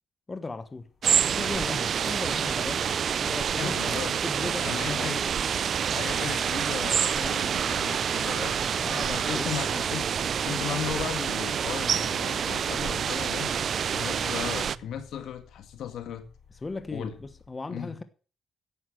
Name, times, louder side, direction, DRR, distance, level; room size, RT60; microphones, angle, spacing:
voice 1, 0.3-0.9 1.4-2.9 3.2-5.4 8.8-9.5 13.6-13.8 16.6-18.0, left 3 dB, 25° left, 1.1 m, -37 dB
sound 1, 0.6-17.5, left 6 dB, 45° left, 6.9 m, -57 dB
sound 2, 1.0-14.8, right 8 dB, 55° right, 0.5 m, -27 dB
voice 2, 3.6-4.2 4.6-5.2 6.0-8.6 9.1-10.1 10.4-13.5 13.9-16.3 16.9-17.2 17.7-18.0, left 9 dB, 75° left, 1.9 m, -36 dB
Old elevator ride, 5.3-15.0, right 2 dB, 10° right, 1.1 m, -51 dB
11.0 x 8.3 x 6.3 m
cardioid pair, 90°, 0 cm